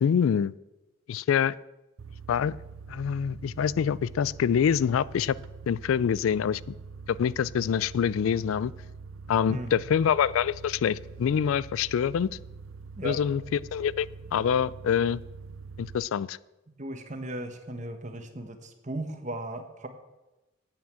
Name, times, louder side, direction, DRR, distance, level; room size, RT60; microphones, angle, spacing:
voice 1, 0.0-0.5 1.1-1.5 2.3-2.6 2.9-5.4 5.7-6.7 7.1-8.7 9.3-12.3 13.0-13.4 13.7-15.2 15.8-16.4, left 8 dB, 75° left, 21 dB, 0.3 m, -25 dB
sound 1, 2.0-16.0, right 4 dB, 70° right, 0.5 m, -44 dB
voice 2, 16.8-19.9, right 1 dB, 35° right, 7 dB, 1.3 m, -36 dB
9.2 x 8.9 x 7.5 m, 1.0 s
head